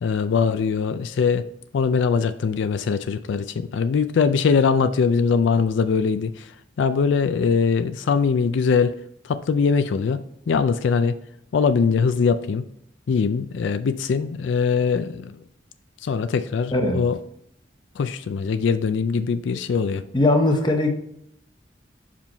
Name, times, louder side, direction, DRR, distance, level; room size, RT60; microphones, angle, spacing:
voice 1, 0.0-1.4 1.7-6.5 6.8-9.0 9.2-11.2 11.5-12.6 13.1-15.4 16.0-17.2 18.0-20.0, left 5 dB, 80° left, 12 dB, 0.4 m, -22 dB
voice 2, 16.7-17.1 20.1-20.9, left 2 dB, 25° left, 5 dB, 0.7 m, -19 dB
5.5 x 5.0 x 4.4 m, 0.72 s
head